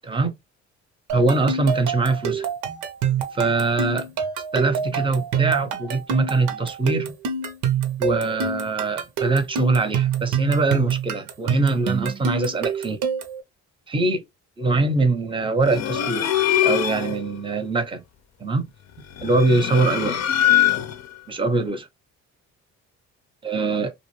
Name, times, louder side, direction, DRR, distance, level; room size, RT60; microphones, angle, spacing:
voice 1, 0.0-0.3 1.1-2.5 3.3-4.1 4.5-7.2 8.0-13.0 13.9-14.2 14.6-16.3 16.6-18.0 18.4-18.7 19.2-20.2 21.3-21.9 23.4-23.9, right 3 dB, 15° right, 0.6 m, -22 dB
sound 1, 1.1-13.4, right 7 dB, 90° right, 0.6 m, -26 dB
sound 2, 15.6-17.2 19.1-21.1, left 12 dB, 60° left, 0.6 m, -22 dB
2.4 x 2.0 x 3.0 m
cardioid pair, 90°, 30 cm